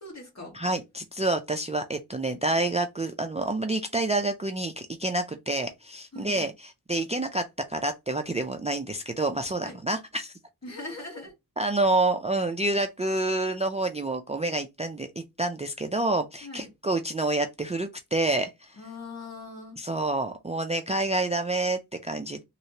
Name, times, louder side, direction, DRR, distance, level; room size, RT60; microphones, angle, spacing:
voice 1, 0.0-0.6 6.1-6.5 9.6-9.8 10.6-11.3 16.4-16.7 18.8-19.8, left 2 dB, 45° left, 1.7 m, -41 dB
voice 2, 0.5-10.3 11.6-18.8 19.8-22.4, right 2 dB, 20° right, 0.3 m, -28 dB
3.2 x 3.0 x 2.8 m
wide cardioid pair, 80°, 38 cm